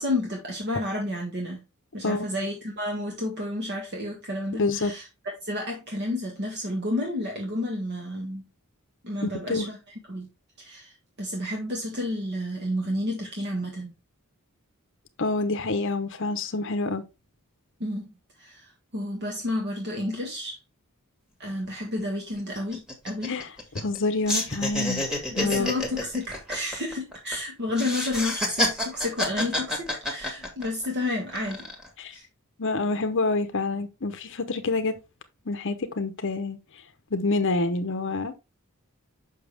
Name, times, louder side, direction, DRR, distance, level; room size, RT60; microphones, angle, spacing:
voice 1, 0.0-1.6 1.9-5.1 5.4-8.4 9.0-9.8 10.1-10.3 10.6-13.9 17.8-18.1 18.4-20.6 21.4-23.3 25.4-31.7 32.1-32.2, left 1 dB, 50° right, 1.5 m, -31 dB
voice 2, 4.6-4.9 9.2-9.7 15.2-17.0 23.2-23.5 23.7-25.1 25.3-25.7 32.0-32.1 32.6-35.0 35.5-36.6 37.1-38.4, left 3 dB, 60° left, 0.8 m, -27 dB
sound 1, 21.5-21.6 21.8-22.0 22.4-24.0 24.3-27.4 27.7-30.9 31.3-31.9, left 1 dB, 5° right, 1.8 m, -29 dB
6.7 x 5.8 x 3.4 m
head